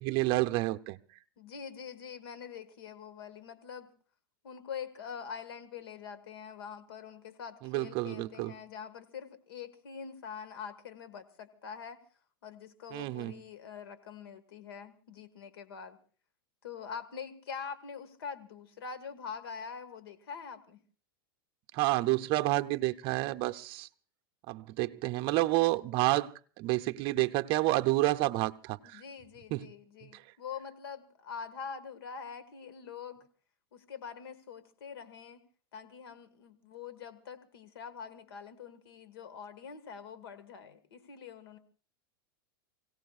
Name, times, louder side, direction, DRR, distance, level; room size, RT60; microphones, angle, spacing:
voice 1, 0.0-1.0 7.6-8.5 12.9-13.3 21.7-23.9 24.5-29.0 29.5-29.7 30.1-30.2, right 19 dB, 45° right, 0.7 m, -29 dB
voice 2, 1.4-3.9 4.4-12.0 12.4-16.0 16.6-20.8 28.8-33.2 33.7-35.4 35.7-41.6, left 6 dB, 80° left, 1.8 m, -44 dB
29.0 x 17.0 x 2.5 m
supercardioid pair, 130°, 12 cm